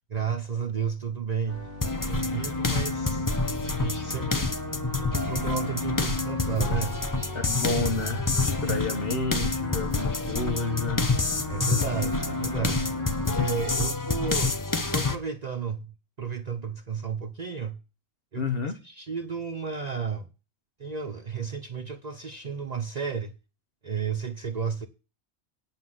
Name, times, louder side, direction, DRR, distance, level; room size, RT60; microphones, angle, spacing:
voice 1, 0.1-1.7 2.1-3.3 3.7-4.5 5.0-7.0 8.7-8.9 11.5-12.9 13.3-15.9 16.2-17.8 18.3-20.3 20.8-23.3 23.8-24.9, right 6 dB, 40° right, 0.8 m, -33 dB
sound 1, 1.5-13.6, right 2 dB, 35° left, 2.9 m, -42 dB
sound 2, 1.8-15.2, left 3 dB, 20° left, 0.7 m, -27 dB
voice 2, 7.3-11.2 18.3-18.8, left 4 dB, 60° left, 1.3 m, -30 dB
8.9 x 5.9 x 7.7 m
omnidirectional pair, 1.1 m